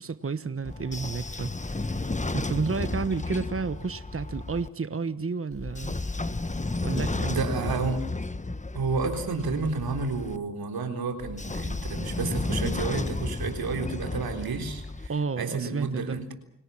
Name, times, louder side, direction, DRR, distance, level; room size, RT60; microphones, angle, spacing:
voice 1, 0.0-6.0 6.8-7.4 15.1-16.2, right 4 dB, 40° right, 1.3 m, -31 dB
Train / Sliding door, 0.6-4.7 5.5-10.4 11.2-15.1, left 2 dB, 20° left, 1.3 m, -32 dB
voice 2, 7.3-8.0 8.7-16.3, right 4 dB, 90° right, 3.8 m, -31 dB
30.0 x 18.0 x 7.4 m
cardioid pair, 50°, 36 cm